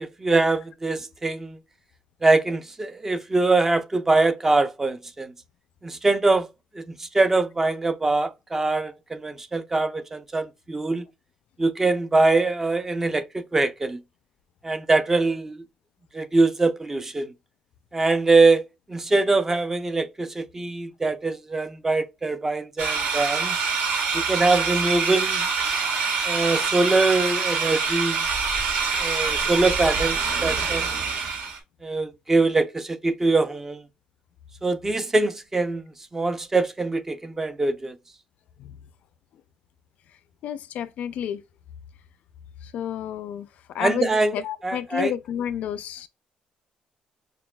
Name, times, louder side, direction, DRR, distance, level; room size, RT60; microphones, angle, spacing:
voice 1, 0.0-1.6 2.2-5.3 5.8-6.5 6.7-11.1 11.6-14.0 14.6-15.6 16.1-17.3 17.9-18.6 18.9-23.6 24.1-25.5 26.3-28.2 29.0-30.8 31.8-33.8 34.6-35.8 36.1-37.9 43.8-44.3 44.6-45.1, right 3 dB, 15° right, 0.4 m, -23 dB
sound 1, 22.8-31.6, right 5 dB, 80° right, 1.4 m, -25 dB
voice 2, 40.4-41.4 42.6-46.1, left 10 dB, 65° left, 0.3 m, -31 dB
5.8 x 2.2 x 2.2 m
cardioid pair, 145°, 3 cm